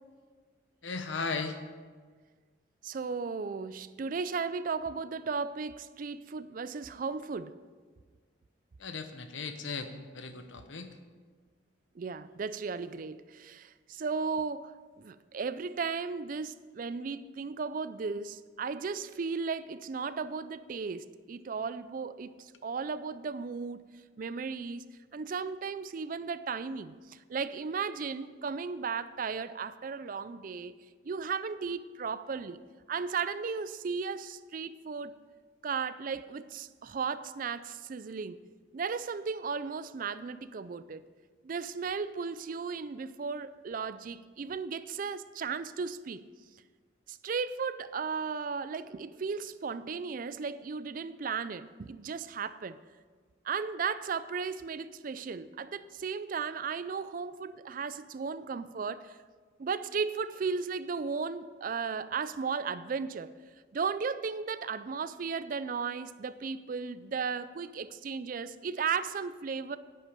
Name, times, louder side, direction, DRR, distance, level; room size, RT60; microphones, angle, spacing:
voice 1, 0.8-1.6 8.8-10.9, left 4 dB, 80° left, 8 dB, 1.0 m, -37 dB
voice 2, 2.8-7.5 12.0-23.8 24.2-24.9 25.1-30.8 31.0-32.6 32.9-35.1 35.6-38.4 38.7-41.1 41.4-46.2 47.1-52.8 53.4-59.1 59.6-63.3 63.7-69.8, right 5 dB, 45° right, 14 dB, 0.4 m, -35 dB
10.5 x 10.0 x 5.1 m, 1.5 s
head